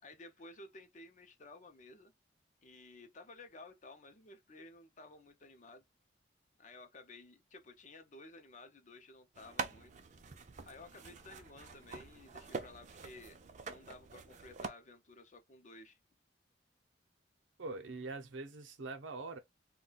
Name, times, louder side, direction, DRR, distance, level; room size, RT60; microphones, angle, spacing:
voice 1, 0.0-2.1 2.6-5.8 6.6-9.9 10.7-13.4 13.6-16.0, left 2 dB, 40° left, 0.6 m, -55 dB
sound 1, 9.3-14.7, right 4 dB, 40° right, 0.5 m, -45 dB
voice 2, 17.6-19.4, right 3 dB, 85° right, 0.7 m, -43 dB
2.4 x 2.2 x 3.8 m
head